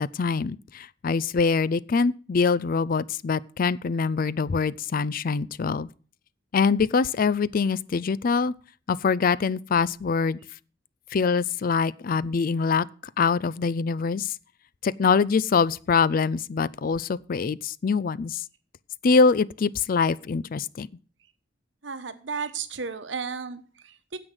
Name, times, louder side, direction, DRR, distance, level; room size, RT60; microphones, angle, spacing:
voice 1, 0.0-5.9 6.5-8.5 8.9-10.4 11.1-12.9 13.2-14.3 14.8-18.4 19.0-20.9, left 5 dB, 50° left, 0.4 m, -24 dB
voice 2, 21.8-24.2, right 5 dB, 75° right, 1.2 m, -34 dB
9.7 x 7.9 x 6.4 m
head